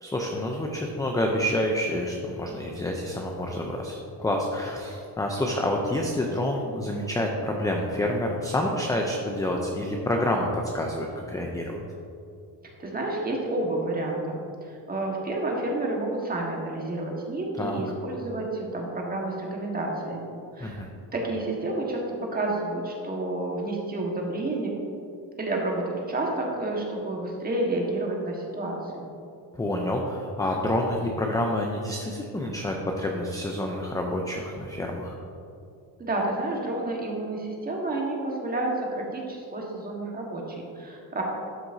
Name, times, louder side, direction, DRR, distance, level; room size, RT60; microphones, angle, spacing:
voice 1, 0.0-11.8 17.6-17.8 20.6-20.9 29.5-35.1, left 1 dB, 10° left, 1 dB, 0.5 m, -28 dB
voice 2, 12.8-20.8 21.1-22.0 22.3-24.7 25.4-29.1 36.0-41.2, right 2 dB, 20° right, -1 dB, 1.4 m, -30 dB
12.5 x 6.0 x 2.7 m, 2.6 s
cardioid pair, 125°, 43 cm